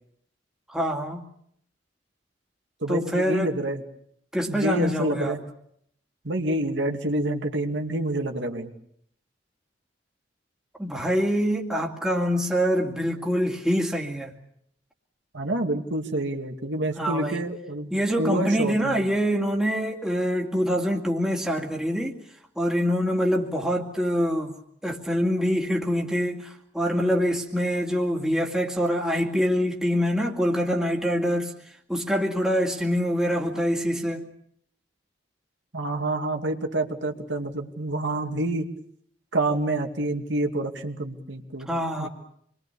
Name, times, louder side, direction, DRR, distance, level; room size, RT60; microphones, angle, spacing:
voice 1, 0.7-1.2 2.9-3.6 4.3-5.4 10.8-14.3 17.0-17.5 17.9-22.2 22.6-24.6 24.8-34.2 41.7-42.1, equal, 5° right, 0 dB, 2.3 m, -25 dB
voice 2, 2.8-3.8 4.5-5.4 6.2-8.7 15.3-17.9 18.2-19.0 35.7-38.7 39.3-41.7 42.0-42.1, right 1 dB, 80° right, 3 dB, 2.5 m, -27 dB
27.5 x 22.0 x 7.0 m, 0.71 s
head